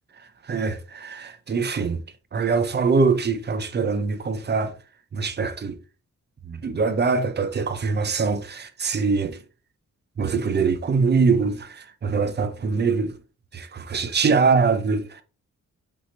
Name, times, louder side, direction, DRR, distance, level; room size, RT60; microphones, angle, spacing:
voice 1, 0.5-2.0 2.3-4.7 5.1-5.8 6.5-9.4 10.2-13.1 13.5-15.2, right 4 dB, 35° right, 0.6 m, -23 dB
5.3 x 3.0 x 3.3 m
wide cardioid pair, 115°, 31 cm